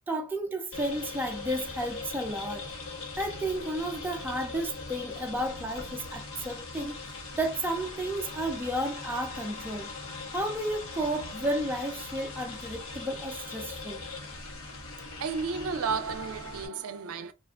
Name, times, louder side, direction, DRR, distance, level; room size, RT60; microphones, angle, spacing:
voice 1, 0.1-2.7 3.2-7.0 7.3-9.9 10.3-14.0, right 1 dB, 10° right, 0.5 m, -32 dB
sound 1, 0.7-16.7, left 3 dB, 75° left, 1.0 m, -40 dB
voice 2, 15.2-17.3, right 5 dB, 80° right, 0.4 m, -32 dB
3.4 x 2.5 x 2.4 m
head